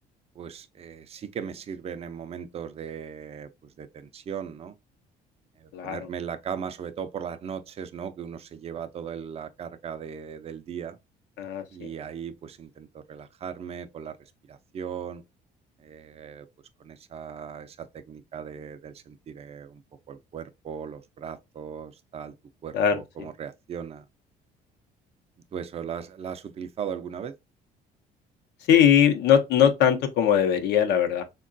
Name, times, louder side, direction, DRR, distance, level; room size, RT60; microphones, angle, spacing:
voice 1, 0.4-4.7 5.6-11.0 11.7-15.2 15.8-16.5 16.8-19.8 20.1-22.3 22.6-24.0 25.5-27.3, right 7 dB, 35° right, 0.4 m, -38 dB
voice 2, 11.4-11.9 22.7-23.3 28.7-31.2, left 9 dB, 80° left, 0.7 m, -21 dB
3.6 x 2.2 x 2.5 m
cardioid pair, 110°, 17 cm